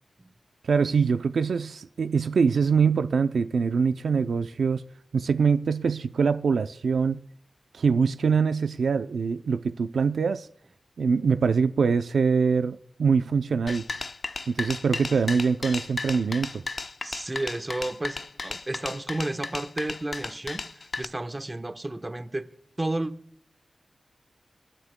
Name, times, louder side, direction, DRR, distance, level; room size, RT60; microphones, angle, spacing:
voice 1, 0.6-4.8 5.1-7.2 7.7-10.5 11.0-13.8 14.5-16.6, right 5 dB, 80° right, 0.4 m, -24 dB
sound 1, 13.7-21.0, left 3 dB, 55° left, 0.6 m, -34 dB
voice 2, 17.0-22.5 22.8-23.1, right 2 dB, 25° right, 1.0 m, -32 dB
27.0 x 9.7 x 2.2 m
wide cardioid pair, 75°, 0 cm